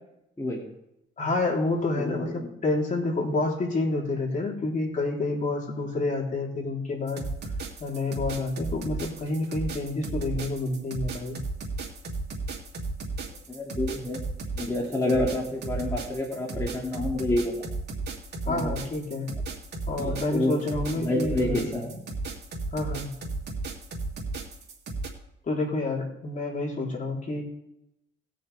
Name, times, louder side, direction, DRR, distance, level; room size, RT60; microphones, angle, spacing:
voice 1, 1.2-7.2 7.8-11.4 18.5-19.3 19.9-21.7 22.7-23.1 25.4-27.4, left 2 dB, 40° left, -1 dB, 3.8 m, -28 dB
voice 2, 2.0-2.5 13.5-14.3 14.6-17.6 18.5-18.7 20.0-20.6 21.0-22.0, left 1 dB, 15° left, -4 dB, 2.7 m, -28 dB
sound 1, 7.1-25.1, right 3 dB, 55° right, 2.8 m, -34 dB
19.5 x 6.7 x 3.5 m, 0.83 s
cardioid pair, 90°, 20 cm